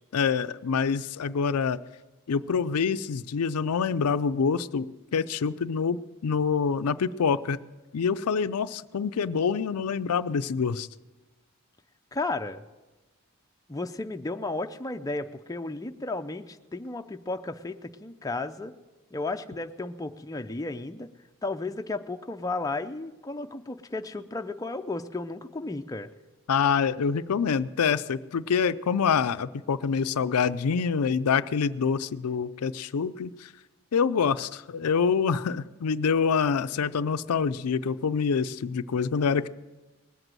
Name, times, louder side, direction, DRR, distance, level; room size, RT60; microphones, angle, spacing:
voice 1, 0.1-1.8 2.3-4.9 5.1-7.6 7.9-10.9 26.5-33.5 33.9-39.5, left 6 dB, 90° left, 13 dB, 0.5 m, -26 dB
voice 2, 12.1-12.6 13.7-18.7 19.1-21.1 21.4-26.1, left 2 dB, 15° left, 6 dB, 0.5 m, -33 dB
19.5 x 8.0 x 7.6 m, 1.1 s
head